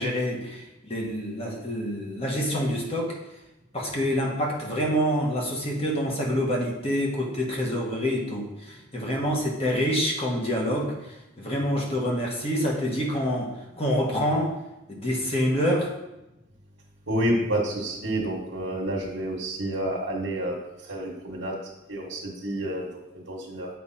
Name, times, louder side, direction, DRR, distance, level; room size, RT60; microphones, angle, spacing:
voice 1, 0.0-3.1 3.7-10.9 11.4-14.5 14.9-15.9, equal, 30° left, -2 dB, 1.6 m, -27 dB
voice 2, 17.1-20.6 20.9-21.6 21.9-23.7, right 1 dB, 80° right, -5 dB, 1.5 m, -29 dB
8.3 x 5.1 x 4.3 m, 0.96 s
head